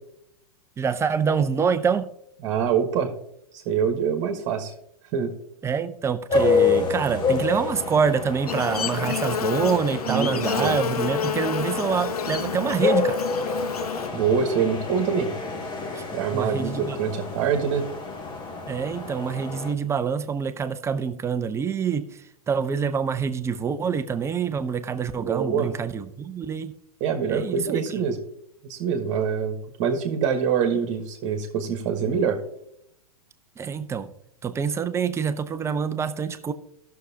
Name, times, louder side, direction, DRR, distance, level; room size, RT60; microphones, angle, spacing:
voice 1, 0.8-2.1 5.6-13.2 15.9-16.0 16.3-17.0 18.7-26.7 27.3-28.0 33.6-34.1 34.4-36.5, right 6 dB, 15° right, 9 dB, 0.7 m, -26 dB
voice 2, 2.4-3.1 3.6-4.7 5.1-5.3 10.1-10.8 14.1-15.3 16.1-17.9 25.2-25.7 27.0-28.2 28.7-32.4, right 7 dB, 40° right, 4 dB, 1.4 m, -25 dB
sound 1, 6.3-19.7, left 4 dB, 25° left, 1.3 m, -28 dB
Buzz, 8.5-14.1, left 7 dB, 80° left, 0.5 m, -29 dB
16.5 x 6.5 x 2.8 m, 0.73 s
hypercardioid pair, 105°, 19 cm